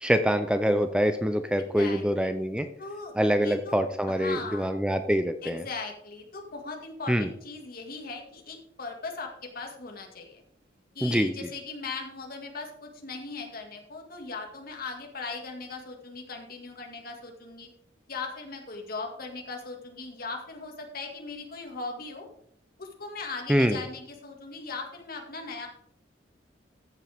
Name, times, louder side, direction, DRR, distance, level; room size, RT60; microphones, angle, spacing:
voice 1, 0.0-2.7 3.2-5.6 7.1-7.3 11.0-11.5 23.5-23.8, equal, 5° right, 8 dB, 0.5 m, -25 dB
voice 2, 1.8-2.3 2.8-4.7 5.4-10.4 10.9-17.7 18.1-22.3 22.8-25.7, left 4 dB, 50° left, 2 dB, 2.1 m, -39 dB
14.0 x 7.3 x 3.6 m, 0.66 s
head